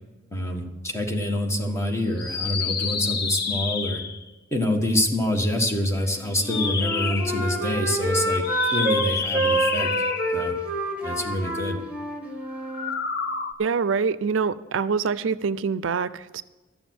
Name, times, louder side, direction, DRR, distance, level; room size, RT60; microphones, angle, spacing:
voice 1, 0.3-4.0 4.5-8.4 8.7-9.9 10.3-10.5 11.0-11.8, left 1 dB, 15° left, 2 dB, 1.5 m, -26 dB
sound 1, 2.1-4.3 6.3-7.4 8.4-10.6 12.6-13.5, left 5 dB, 55° left, 1.1 m, -29 dB
Wind instrument woodwind instrument, 6.3-9.0 9.3-13.0, right 1 dB, 5° right, 2.1 m, -27 dB
voice 2, 13.6-16.4, right 5 dB, 80° right, 16 dB, 0.5 m, -25 dB
13.0 x 7.1 x 9.3 m, 1.2 s
head